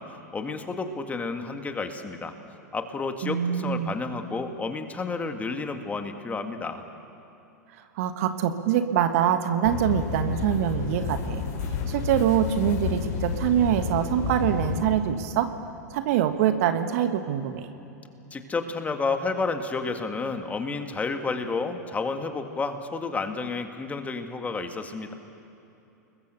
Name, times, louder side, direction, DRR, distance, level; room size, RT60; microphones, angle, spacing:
voice 1, 0.0-2.3 2.7-6.8 18.3-25.1, left 4 dB, 15° left, 6 dB, 1.9 m, -31 dB
voice 2, 3.2-4.0 8.0-11.4 11.9-15.5 15.9-17.7, right 10 dB, 55° right, 8 dB, 1.5 m, -24 dB
sound 1, 9.6-14.8, left 7 dB, 55° left, 5.4 m, -31 dB
29.5 x 21.5 x 6.9 m, 2.9 s
figure-of-eight pair, 95°, 9 cm